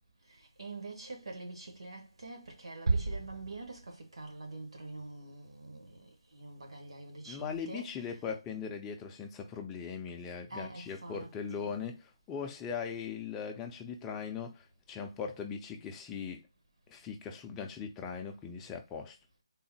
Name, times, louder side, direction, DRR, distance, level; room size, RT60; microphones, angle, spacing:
voice 1, 0.3-8.3 10.5-11.8, right 3 dB, 80° right, 1.4 m, -46 dB
sound 1, 2.9-4.3, right 3 dB, 60° right, 0.7 m, -33 dB
voice 2, 7.3-16.4 16.9-19.2, left 6 dB, 10° left, 0.4 m, -40 dB
3.9 x 2.1 x 4.1 m
hypercardioid pair, 165°, 3 cm